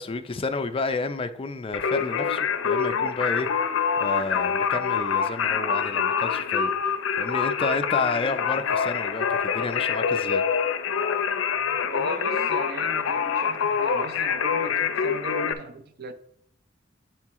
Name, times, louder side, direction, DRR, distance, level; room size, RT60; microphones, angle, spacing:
voice 1, 0.0-3.5 4.0-10.4, left 3 dB, 30° left, 0.4 m, -30 dB
Singing, 1.7-15.5, left 6 dB, 80° left, 0.5 m, -25 dB
voice 2, 11.8-16.1, right 3 dB, 55° right, 0.6 m, -38 dB
8.2 x 4.5 x 3.6 m
head